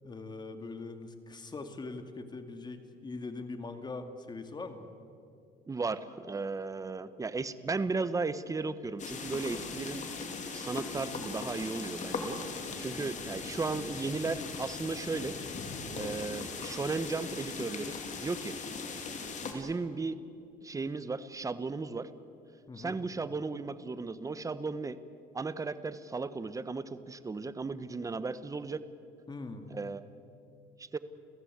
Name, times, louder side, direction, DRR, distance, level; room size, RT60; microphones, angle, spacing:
voice 1, 0.0-4.9 12.9-13.2 22.7-23.0 29.3-29.7, left 3 dB, 25° left, 7 dB, 2.2 m, -42 dB
voice 2, 5.7-10.0 10.5-12.4 12.8-15.3 15.9-18.6 19.4-20.2 20.6-22.1 22.8-25.0 25.3-28.8 29.7-30.0 30.8-31.0, right 4 dB, 20° right, 13 dB, 1.0 m, -35 dB
sound 1, 9.0-19.5, left 4 dB, 45° left, 3.2 m, -39 dB
30.0 x 16.0 x 8.1 m, 2.5 s
cardioid pair, 110°, 17 cm